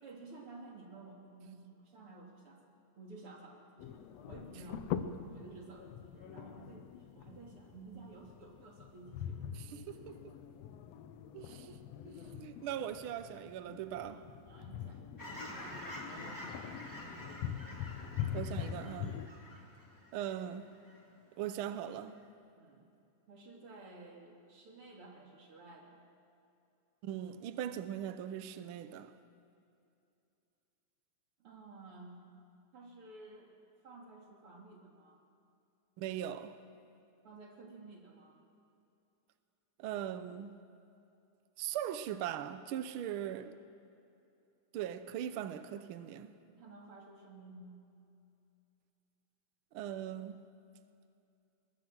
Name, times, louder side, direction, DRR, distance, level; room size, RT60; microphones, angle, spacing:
voice 1, 0.0-2.6 3.0-9.5 14.1-16.7 19.4-19.6 22.6-22.9 23.3-26.0 31.4-32.2 32.7-33.6 33.8-35.2 37.2-38.4 46.5-47.8, right 3 dB, 50° right, 3.5 m, -53 dB
sound 1, 3.8-19.3, left 9 dB, 70° left, 1.8 m, -43 dB
voice 2, 9.7-10.2 11.3-11.8 12.0-14.2 18.3-19.2 20.1-20.7 21.4-22.2 27.0-29.1 36.0-36.6 39.8-40.5 41.6-43.6 44.7-46.3 49.7-50.4, right 10 dB, 90° right, 1.1 m, -40 dB
Fowl / Chirp tweet, 15.2-21.0 21.4-21.7, left 1 dB, 5° left, 2.2 m, -48 dB
22.0 x 20.0 x 6.1 m
omnidirectional pair, 3.4 m